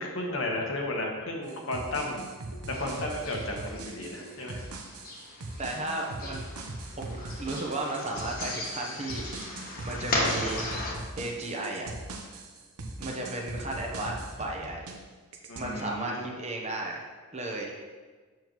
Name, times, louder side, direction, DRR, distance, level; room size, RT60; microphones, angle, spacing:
voice 1, 0.0-2.2 2.7-4.6 15.5-16.4, left 1 dB, 60° left, 0 dB, 1.2 m, -33 dB
sound 1, 1.5-15.0 15.3-15.8, right 2 dB, 90° right, 0.9 m, -40 dB
sound 2, 2.7-10.9, left 2 dB, 40° left, 1.2 m, -36 dB
voice 2, 5.6-6.5 7.0-9.6 9.8-10.7 11.2-11.9 13.0-14.9 15.6-17.0 17.3-17.7, right 2 dB, 30° right, -1 dB, 0.9 m, -34 dB
7.7 x 7.0 x 3.1 m, 1.4 s
head